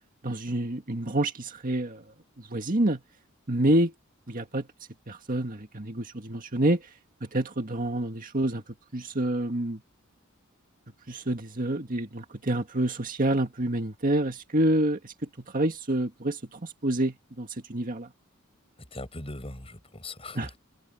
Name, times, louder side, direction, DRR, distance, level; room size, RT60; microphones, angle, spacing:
voice 1, 0.2-2.0 2.4-3.0 3.5-3.9 4.3-4.7 5.1-6.9 7.2-8.6 8.9-9.8 11.1-15.1 15.5-18.1 20.3-20.5, right 1 dB, 40° right, 1.9 m, -27 dB
voice 2, 18.9-20.6, left 2 dB, 30° left, 7.5 m, -40 dB
head